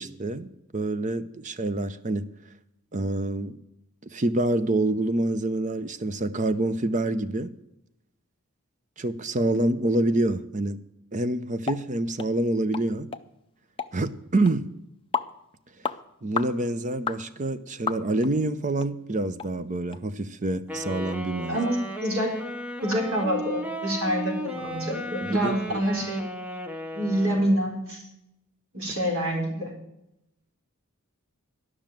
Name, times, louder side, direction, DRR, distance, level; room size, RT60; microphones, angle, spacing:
voice 1, 0.0-2.3 2.9-3.6 4.0-7.5 9.0-10.8 11.1-13.1 13.9-14.7 16.2-21.7 25.2-25.8, right 2 dB, 35° right, 13 dB, 0.7 m, -27 dB
sound 1, 11.7-11.8 12.2-12.3 12.7-12.9 13.1-13.2 13.8-13.9 14.5-14.6 15.1-15.3 15.8-16.0 16.4-16.5 17.1-17.2 17.9-18.3 18.8-18.9 19.4-19.5 19.9-20.0, left 6 dB, 25° left, 0.5 m, -30 dB
Wind instrument woodwind instrument, 20.7-27.6, equal, 5° right, 1.0 m, -35 dB
voice 2, 22.8-26.2 27.0-28.0 28.7-29.7, equal, 65° right, 1 dB, 3.8 m, -26 dB
12.0 x 6.2 x 9.0 m, 0.83 s
head